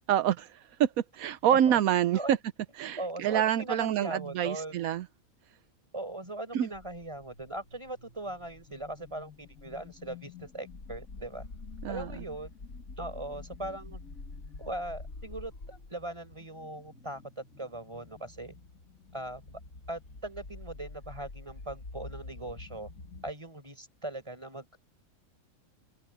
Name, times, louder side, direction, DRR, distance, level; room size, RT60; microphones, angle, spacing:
voice 1, 0.1-2.4 2.8-5.1 6.5-6.7 11.8-12.1, right 10 dB, 85° right, 1.1 m, -27 dB
voice 2, 3.0-4.8 5.9-11.5 11.9-12.5 13.0-14.0 14.6-18.5 19.1-19.6 19.9-22.9 23.2-24.8, right 1 dB, 20° right, 4.7 m, -40 dB
sound 1, 6.7-23.3, left 3 dB, 80° left, 2.8 m, -47 dB
omnidirectional pair, 1.5 m